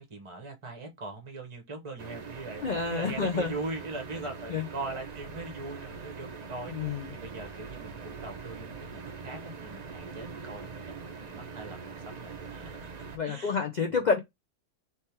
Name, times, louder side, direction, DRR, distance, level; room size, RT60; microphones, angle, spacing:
voice 1, 0.0-8.8 9.2-14.0, right 3 dB, 25° right, 0.8 m, -41 dB
sound 1, 2.0-13.2, right 5 dB, 55° right, 0.4 m, -43 dB
voice 2, 2.6-3.5 4.5-4.6 6.7-7.0 13.2-14.2, left 5 dB, 65° left, 0.4 m, -28 dB
3.5 x 3.0 x 4.4 m
omnidirectional pair, 1.6 m